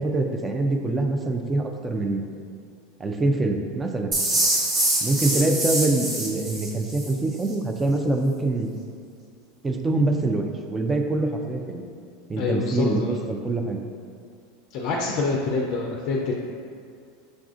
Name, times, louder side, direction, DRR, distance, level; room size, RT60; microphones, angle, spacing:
voice 1, 0.0-2.2 3.0-4.2 5.0-8.7 9.6-11.8 12.3-13.8, right 2 dB, 15° right, 4 dB, 0.4 m, -24 dB
sound 1, 4.1-7.1, right 2 dB, 40° right, 1.1 m, -24 dB
voice 2, 12.4-13.2 14.7-16.3, left 3 dB, 55° left, -1 dB, 0.4 m, -26 dB
6.1 x 2.4 x 2.4 m, 2.2 s
supercardioid pair, 110°, 0 cm